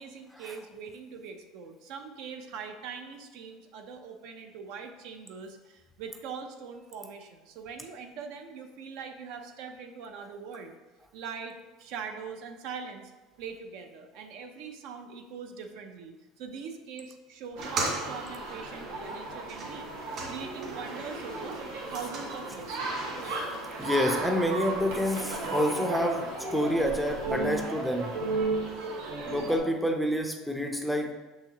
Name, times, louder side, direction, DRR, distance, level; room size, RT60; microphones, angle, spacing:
voice 1, 0.0-10.7 11.1-13.1 13.4-19.9 20.3-21.6 21.9-22.9, right 6 dB, 65° right, 6 dB, 0.7 m, -42 dB
sound 1, 17.5-21.0 21.3-23.3, right 2 dB, 45° right, 1.9 m, -39 dB
sound 2, 17.6-29.6, right 2 dB, 90° right, 1.5 m, -34 dB
voice 2, 23.8-28.1 29.2-31.1, equal, ahead, 3 dB, 0.5 m, -28 dB
6.5 x 5.7 x 2.9 m, 1.2 s
cardioid pair, 150°, 0 cm